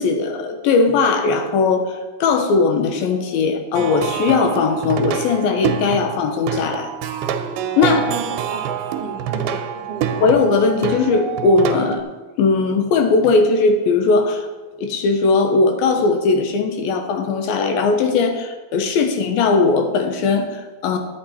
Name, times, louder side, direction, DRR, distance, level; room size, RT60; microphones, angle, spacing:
voice 1, 0.0-6.9 7.8-8.1 10.2-12.0 12.4-14.5 14.8-21.0, left 4 dB, 75° left, 6 dB, 2.6 m, -18 dB
Plucked string instrument, 3.7-12.0, right 8 dB, 85° right, 2.5 m, -26 dB
voice 2, 7.8-8.7 9.0-10.3, right 3 dB, 60° right, -5 dB, 1.2 m, -33 dB
11.5 x 8.6 x 4.2 m, 1.2 s
omnidirectional pair, 4.5 m